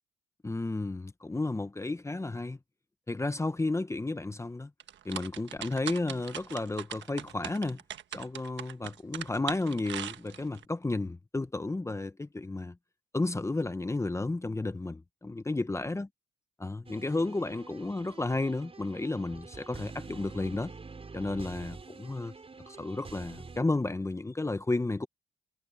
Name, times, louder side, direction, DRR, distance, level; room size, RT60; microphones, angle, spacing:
voice 1, 0.4-2.6 3.1-4.7 5.0-7.8 8.1-12.8 13.1-16.1 16.6-20.7 21.1-22.3 22.7-25.1, left 2 dB, 15° left, 0.9 m, -32 dB
sound 1, 4.8-10.6, right 10 dB, 70° right, 1.4 m, -40 dB
sound 2, 16.9-23.6, right 4 dB, 30° right, 5.3 m, -47 dB
cardioid pair, 90°, 20 cm